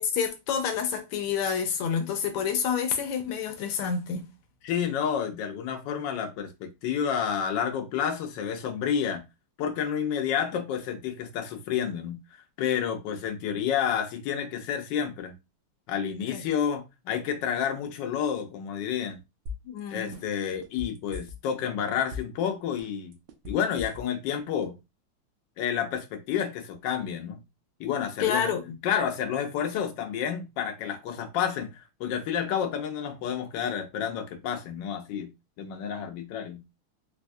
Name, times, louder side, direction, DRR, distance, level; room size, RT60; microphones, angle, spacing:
voice 1, 0.0-4.3 16.3-16.4 19.6-20.2 28.2-28.8, left 7 dB, 85° left, 1.5 m, -28 dB
voice 2, 4.6-9.2 9.6-15.3 15.9-19.2 19.9-23.2 23.4-24.7 25.6-27.4 27.8-28.5 28.8-35.3 35.6-36.6, left 8 dB, 70° left, 1.2 m, -30 dB
sound 1, 19.5-19.8 20.1-21.6 22.0-22.5 22.8-24.3 24.6-24.7, left 4 dB, 75° right, 1.2 m, -38 dB
4.0 x 2.2 x 2.6 m
omnidirectional pair, 2.4 m